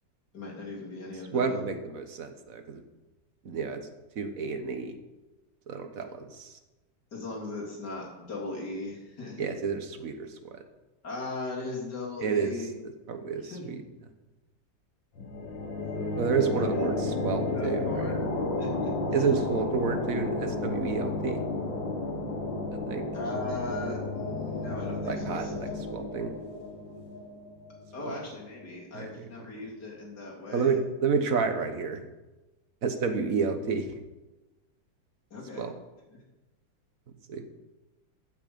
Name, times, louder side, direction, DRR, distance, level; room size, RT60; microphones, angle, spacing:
voice 1, 0.3-1.6 7.1-9.4 11.0-12.8 13.5-13.7 16.6-16.9 17.5-18.2 18.6-18.9 23.1-25.5 27.9-30.8 35.3-35.7, left 2 dB, 60° left, -3 dB, 3.6 m, -38 dB
voice 2, 1.3-2.8 3.4-3.8 4.1-5.0 5.7-6.5 9.4-10.3 12.2-12.7 13.1-13.8 16.2-17.9 19.1-21.4 22.7-23.0 25.0-26.3 28.0-28.1 28.9-29.3 30.5-32.1 32.8-34.0 35.6-35.7 37.3-37.5, right 5 dB, 50° right, 7 dB, 1.5 m, -30 dB
sound 1, 15.2-28.5, left 2 dB, 80° left, 2.6 m, -32 dB
15.0 x 7.6 x 5.4 m, 1.1 s
omnidirectional pair, 2.0 m